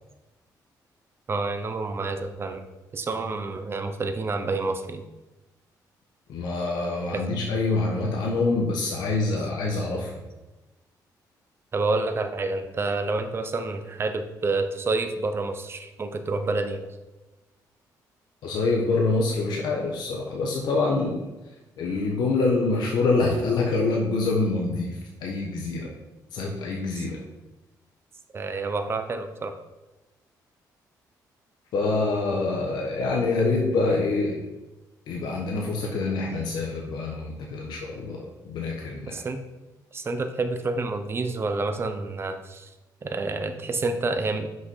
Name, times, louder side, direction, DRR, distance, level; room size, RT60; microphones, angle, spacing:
voice 1, 1.3-2.7 2.9-5.0 11.7-16.9 27.0-27.1 28.3-29.5 39.1-39.4 39.9-42.7 43.0-44.5, right 3 dB, 35° right, 7 dB, 0.8 m, -28 dB
voice 2, 6.3-10.2 18.4-21.2 21.8-25.9 26.3-27.2 31.7-34.4 35.1-39.2, left 3 dB, 80° left, -1 dB, 1.3 m, -26 dB
6.2 x 5.7 x 5.6 m, 1.1 s
cardioid pair, 100°, 7 cm